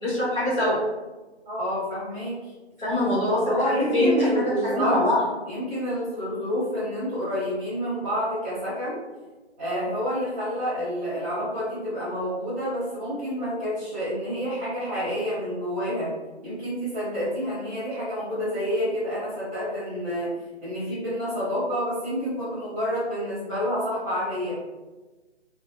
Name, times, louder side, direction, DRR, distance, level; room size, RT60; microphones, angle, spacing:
voice 1, 0.0-0.8 2.8-3.6 3.9-5.2, left 1 dB, 15° left, -15 dB, 1.2 m, -23 dB
voice 2, 1.5-2.4 3.4-5.1 5.5-9.0 9.6-16.1 16.4-20.3 20.6-24.5, equal, 15° right, -11 dB, 0.7 m, -28 dB
2.6 x 2.0 x 2.5 m, 1.2 s
figure-of-eight pair, 150°, 34 cm